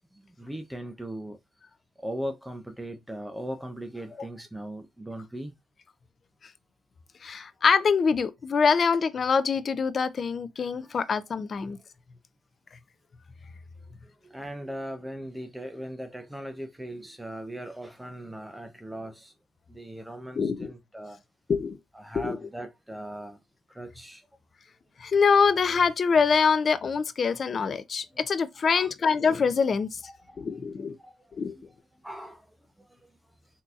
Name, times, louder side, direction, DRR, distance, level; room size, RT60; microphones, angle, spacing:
voice 1, 0.1-1.4 2.0-5.5 10.8-11.0 14.0-19.3 19.7-21.2 21.9-23.4 23.7-24.2 28.6-28.9 30.0-30.4 30.7-31.6 32.0-32.5 32.8-33.1, right 1 dB, 10° right, 0.6 m, -39 dB
voice 2, 7.2-11.8 20.4-20.7 21.5-21.8 22.1-22.4 25.0-30.0 30.4-30.9 31.4-31.6, left 5 dB, 50° left, 0.4 m, -24 dB
3.7 x 2.7 x 2.4 m
cardioid pair, 75°, 0 cm